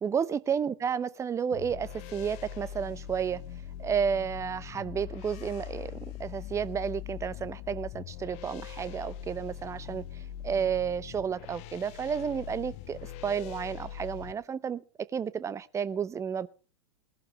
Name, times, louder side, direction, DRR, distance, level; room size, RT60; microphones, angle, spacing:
voice 1, 0.0-3.4 3.8-16.5, right 7 dB, 20° right, 0.8 m, -32 dB
sound 1, 1.5-14.3, left 11 dB, 45° left, 1.0 m, -42 dB
20.5 x 12.0 x 3.3 m
figure-of-eight pair, 95°, 15 cm